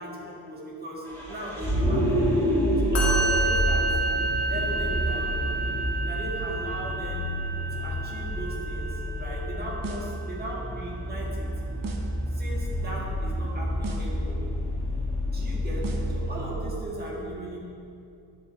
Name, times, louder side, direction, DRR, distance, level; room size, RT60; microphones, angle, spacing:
voice 1, 0.0-2.5 2.8-3.9 4.5-5.4 6.1-7.3 7.7-11.5 12.3-14.5 15.3-17.6, right 1 dB, 25° right, -5 dB, 1.9 m, -37 dB
Vehicle, 1.0-16.5, equal, 5° left, 2.2 m, -29 dB
Musical instrument, 2.9-10.2, right 3 dB, 35° left, 1.7 m, -30 dB
sound 1, 9.8-10.2 11.8-12.2 13.8-14.2 15.8-16.2, right 3 dB, 55° right, 1.0 m, -37 dB
10.5 x 8.0 x 3.2 m, 2.6 s
wide cardioid pair, 165°, 40 cm